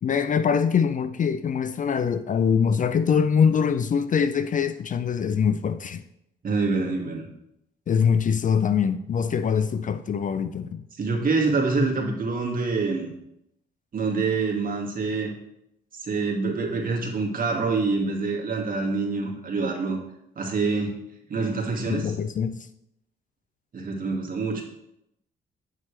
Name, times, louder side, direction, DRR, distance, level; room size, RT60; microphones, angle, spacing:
voice 1, 0.0-6.0 7.9-10.8 21.9-22.7, left 7 dB, 40° left, 0.4 m, -23 dB
voice 2, 6.4-7.2 11.0-13.1 13.9-15.3 15.9-20.0 20.4-21.0 21.3-22.1 23.7-24.6, right 4 dB, 45° right, 2.1 m, -26 dB
8.4 x 7.2 x 3.4 m
cardioid pair, 90°, 20 cm